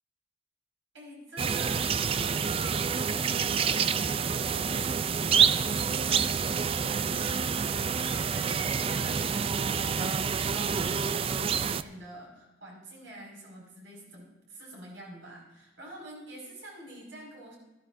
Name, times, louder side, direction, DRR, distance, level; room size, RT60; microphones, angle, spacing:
voice 1, 0.9-2.7 3.0-17.6, right 1 dB, 80° right, -2 dB, 5.4 m, -47 dB
sound 1, 1.4-11.8, right 6 dB, 30° right, 0.3 m, -28 dB
20.0 x 13.0 x 2.6 m, 1.1 s
head